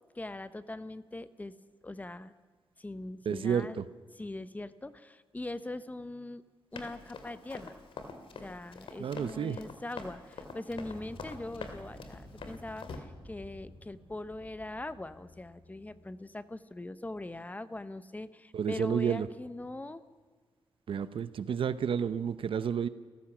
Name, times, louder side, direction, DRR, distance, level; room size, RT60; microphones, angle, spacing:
voice 1, 0.1-1.5 1.8-2.3 2.8-3.8 4.2-6.4 6.7-7.7 8.4-20.0, left 2 dB, 15° left, 13 dB, 0.8 m, -41 dB
voice 2, 3.2-3.9 9.0-9.6 18.5-19.3 20.9-22.9, right 7 dB, 75° right, 14 dB, 0.8 m, -31 dB
Run, 6.8-13.0, left 4 dB, 75° left, 2.4 m, -44 dB
sound 1, 10.7-16.2, left 1 dB, ahead, 6.8 m, -52 dB
29.5 x 15.0 x 6.1 m, 1.4 s
wide cardioid pair, 120°, 9 cm